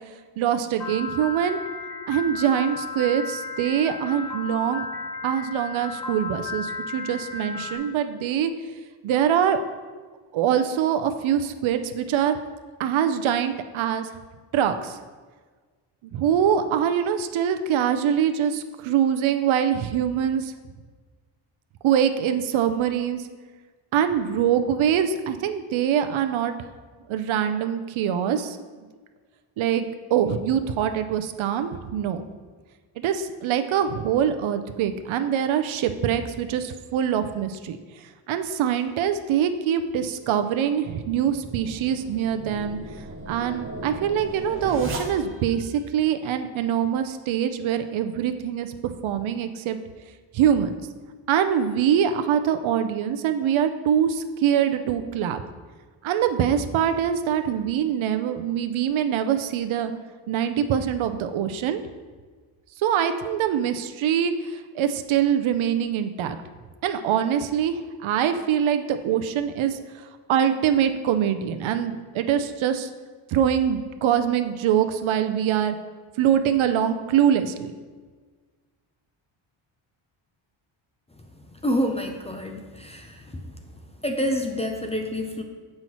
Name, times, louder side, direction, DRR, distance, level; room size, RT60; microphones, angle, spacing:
voice 1, 0.4-1.6 2.1-4.9 5.2-8.5 9.0-9.6 10.3-12.4 12.8-14.1 14.5-15.0 16.0-20.5 21.8-23.3 23.9-26.5 27.1-28.6 29.6-32.2 33.0-37.8 38.3-42.8 43.3-49.8 50.3-50.9 51.3-55.4 56.0-59.9 60.3-61.8 62.8-66.4 66.8-69.8 70.3-72.9 73.3-75.8 76.2-77.7, right 9 dB, 75° right, 8 dB, 0.6 m, -24 dB
Piano, 0.8-7.8, left 3 dB, 60° left, 1.3 m, -34 dB
sound 1, 41.0-45.6, right 1 dB, 25° right, 1.0 m, -36 dB
voice 2, 81.6-83.5 84.0-85.4, equal, 15° left, 3 dB, 0.4 m, -28 dB
7.6 x 5.6 x 3.0 m, 1.4 s
cardioid pair, 125°, 48 cm